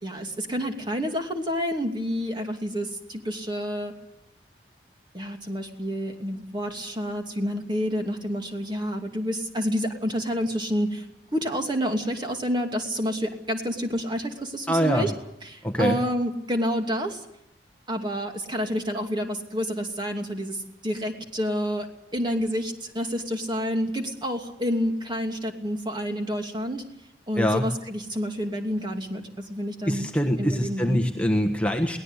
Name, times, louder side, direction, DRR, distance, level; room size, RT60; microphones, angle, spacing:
voice 1, 0.0-3.9 5.1-11.0 11.3-15.1 15.4-17.2 17.9-21.9 22.1-26.8 27.3-30.1 30.4-31.0, equal, 25° right, 3 dB, 2.7 m, -29 dB
voice 2, 14.7-15.1 15.6-16.0 27.3-27.6 29.8-32.0, equal, 5° left, 4 dB, 1.3 m, -24 dB
23.0 x 18.0 x 8.2 m, 0.80 s
head